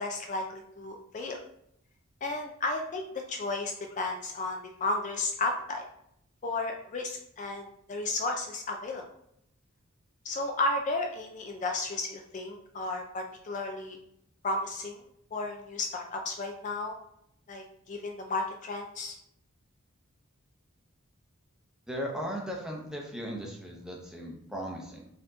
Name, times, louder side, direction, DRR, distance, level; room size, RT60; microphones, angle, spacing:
voice 1, 0.0-1.4 2.2-5.8 6.4-9.0 10.2-14.0 14.4-15.0 15.3-17.0 17.5-19.1, left 2 dB, 35° left, 3 dB, 0.4 m, -33 dB
voice 2, 21.9-25.1, equal, 5° right, -1 dB, 0.7 m, -37 dB
4.2 x 2.8 x 3.7 m, 0.74 s
head